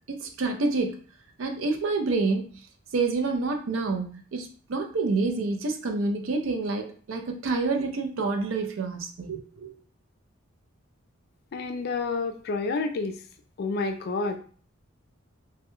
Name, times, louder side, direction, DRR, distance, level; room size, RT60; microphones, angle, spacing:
voice 1, 0.1-1.0 1.4-2.5 2.9-9.7, right 3 dB, 75° right, 4 dB, 0.5 m, -28 dB
voice 2, 11.5-13.1 13.6-14.4, left 3 dB, 50° left, 6 dB, 0.3 m, -29 dB
2.2 x 2.2 x 3.0 m, 0.42 s
head